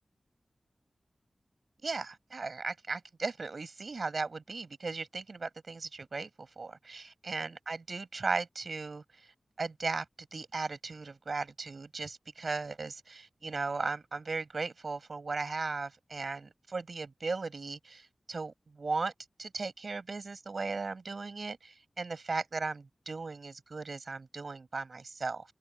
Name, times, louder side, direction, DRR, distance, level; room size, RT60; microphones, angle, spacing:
voice 1, 1.8-6.3 6.6-9.0 9.6-10.0 10.3-19.1 19.4-25.4, right 4 dB, 65° right, 7.9 m, -37 dB
open air
wide cardioid pair, 60°, 0 cm